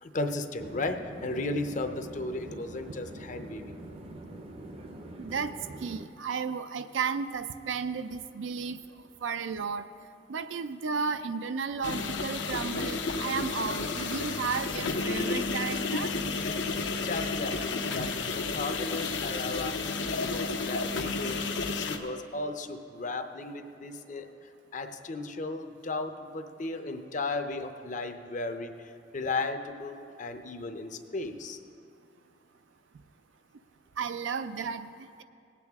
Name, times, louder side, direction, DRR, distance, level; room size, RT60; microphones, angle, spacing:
voice 1, 0.0-3.7 17.0-19.8 20.0-21.4 21.7-24.3 24.7-31.6, left 2 dB, 40° left, 7 dB, 0.6 m, -35 dB
sound 1, 0.6-6.1, right 1 dB, 30° right, 0.6 m, -44 dB
voice 2, 5.2-8.8 9.2-9.9 10.3-16.1 34.0-35.2, right 5 dB, 85° right, 11 dB, 0.5 m, -33 dB
sound 2, 11.8-22.0, left 4 dB, 80° left, 0.8 m, -31 dB
18.5 x 8.4 x 3.6 m, 2.5 s
head